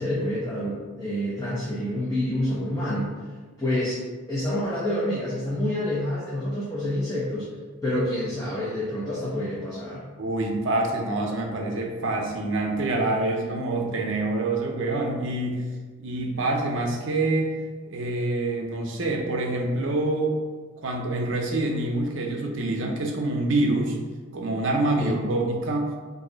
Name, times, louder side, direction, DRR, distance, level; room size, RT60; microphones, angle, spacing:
voice 1, 0.0-3.2 3.6-4.0 4.3-7.5 7.8-10.0 25.0-25.2, left 1 dB, 15° left, -8 dB, 0.6 m, -28 dB
voice 2, 10.2-15.6 16.0-17.5 17.9-20.4 20.8-24.0 24.3-25.9, right 2 dB, 60° right, 1 dB, 0.5 m, -26 dB
3.1 x 2.6 x 3.8 m, 1.4 s
head